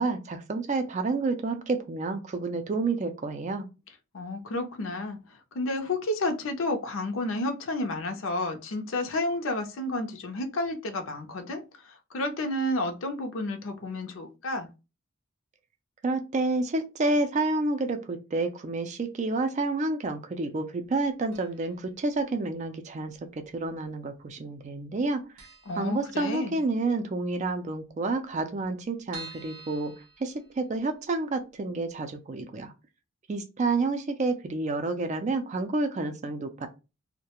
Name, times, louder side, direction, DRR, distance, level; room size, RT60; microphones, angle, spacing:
voice 1, 0.0-3.7 16.0-25.2 25.8-29.9 30.2-32.7 33.3-36.7, right 3 dB, 35° right, 0.3 m, -29 dB
voice 2, 4.1-5.2 5.5-11.6 12.1-14.7 25.7-26.6, left 2 dB, 70° left, 0.5 m, -31 dB
sound 1, 21.3-21.9 22.1-22.2 23.1-23.8 24.1-24.3 24.6-24.7 25.0-25.1 25.4-26.7 27.1-27.2 27.4-27.5 27.7-27.8 28.3-31.0 31.4-31.5 31.9-32.0, right 3 dB, 85° right, 0.6 m, -48 dB
2.3 x 2.1 x 2.8 m
head